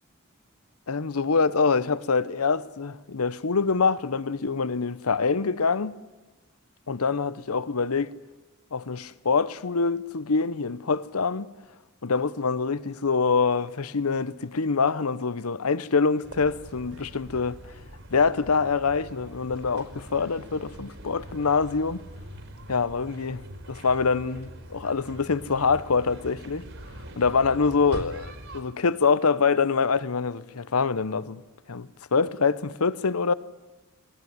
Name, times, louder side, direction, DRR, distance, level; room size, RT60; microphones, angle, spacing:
voice 1, 0.9-5.9 6.9-8.2 8.7-11.5 12.0-17.6 18.1-22.0 22.7-23.4 23.7-26.6 27.2-31.4 31.7-33.3, left 4 dB, 90° left, 0.9 m, -25 dB
sound 1, 16.2-28.6, right 1 dB, 65° right, 4.8 m, -43 dB
26.5 x 19.0 x 9.6 m
head